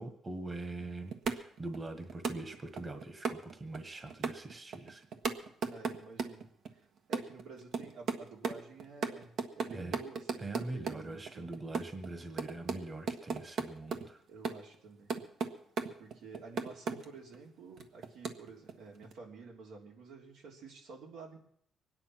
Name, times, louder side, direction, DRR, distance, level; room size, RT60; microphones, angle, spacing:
voice 1, 0.0-5.1 9.7-10.0 10.4-14.2, right 2 dB, 30° right, 8 dB, 1.6 m, -43 dB
sound 1, 0.8-0.9 1.1-1.8 2.1-3.8 4.1-6.7 7.1-8.2 8.4-10.9 11.3-12.8 13.1-14.0 14.4-14.7 15.1-15.5 15.8-17.0 17.3-17.4 17.8-18.7 19.0-19.1, right 5 dB, 70° right, 1.5 m, -34 dB
voice 2, 5.7-6.5 7.1-11.6 14.3-15.1 16.0-21.4, right 4 dB, 90° right, -1 dB, 3.5 m, -50 dB
23.0 x 9.8 x 5.9 m, 0.66 s
cardioid pair, 90°, 0 cm